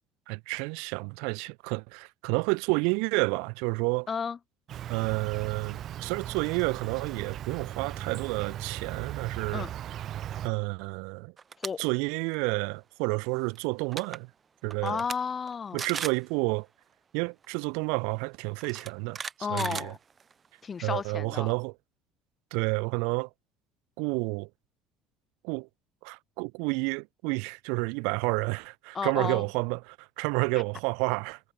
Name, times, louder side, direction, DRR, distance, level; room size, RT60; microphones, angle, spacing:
voice 1, 0.3-4.1 4.9-9.7 10.4-11.3 11.8-14.3 14.6-15.0 15.7-16.7 17.1-19.2 19.5-19.9 20.8-21.7 22.5-23.3 24.0-24.5 25.4-25.7 26.0-31.4, right 35 dB, 80° right, 4.3 m, -30 dB
voice 2, 4.1-4.4 9.5-9.7 11.6-11.9 14.8-15.8 19.4-20.0 20.6-21.5 28.9-29.4, left 6 dB, 30° left, 2.1 m, -32 dB
Insect, 4.7-10.5, right 11 dB, 50° right, 4.5 m, -38 dB
sound 1, 11.4-11.7 12.1-12.4 13.6-13.7 13.9-14.2 14.7-15.2 15.5-15.6 15.8-16.2 17.4-17.5 18.6-20.5, right 6 dB, 30° right, 7.2 m, -37 dB
supercardioid pair, 95°, 0 cm